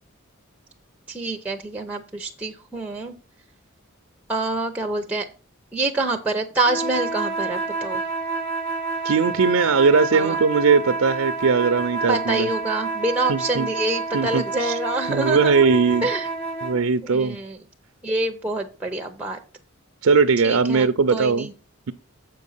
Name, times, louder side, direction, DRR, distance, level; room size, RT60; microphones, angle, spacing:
voice 1, 1.1-3.1 4.3-5.3 5.7-8.0 10.1-10.4 12.1-15.7 16.0-16.3 17.0-17.6 18.0-19.4 20.4-21.5, right 2 dB, 5° right, 0.6 m, -26 dB
sound 1, 6.6-16.8, right 3 dB, 25° left, 1.7 m, -29 dB
voice 2, 9.0-12.5 13.3-13.7 14.1-14.7 15.1-16.1 16.6-17.4 20.0-21.5, right 5 dB, 80° right, 0.5 m, -19 dB
7.8 x 5.3 x 5.5 m
head